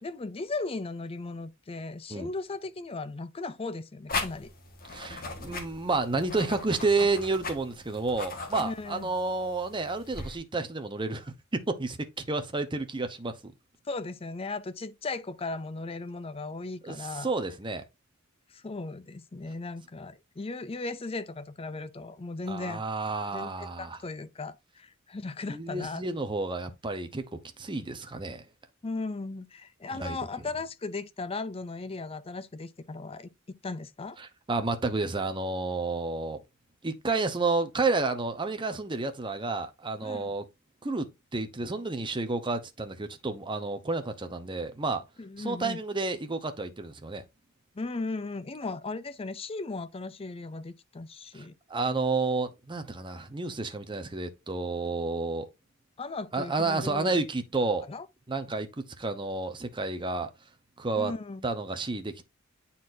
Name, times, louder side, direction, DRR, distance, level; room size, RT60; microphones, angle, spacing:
voice 1, 0.0-4.5 8.6-9.1 13.9-17.3 18.5-22.8 23.3-26.0 28.8-33.3 33.6-34.2 40.0-40.3 45.2-45.8 47.7-51.6 56.0-57.2 57.8-58.1 61.0-61.5, left 3 dB, 25° left, 0.5 m, -37 dB
sound 1, 4.1-10.4, left 3 dB, 45° left, 1.5 m, -39 dB
voice 2, 4.9-13.5 16.8-17.8 22.5-24.0 25.5-27.2 27.6-28.4 29.9-30.2 34.2-36.4 36.8-40.4 40.8-45.0 45.4-47.2 51.3-51.4 51.7-55.5 56.3-57.9 58.3-60.3 60.8-61.1 61.4-62.3, right 3 dB, 25° right, 0.9 m, -30 dB
9.4 x 4.2 x 2.6 m
head